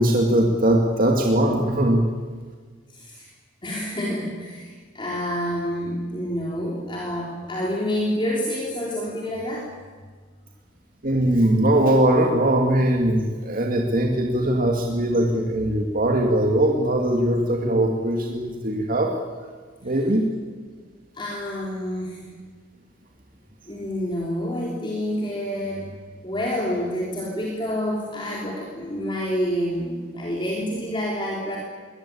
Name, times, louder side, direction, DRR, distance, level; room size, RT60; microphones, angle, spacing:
voice 1, 0.0-2.0 11.0-19.1 19.8-20.2, right 1 dB, 45° right, 1 dB, 2.4 m, -20 dB
voice 2, 2.9-3.3 3.6-9.8 21.1-22.2 23.7-25.9 26.2-31.6, equal, 25° left, -3 dB, 3.8 m, -28 dB
22.5 x 19.0 x 8.7 m, 1.5 s
head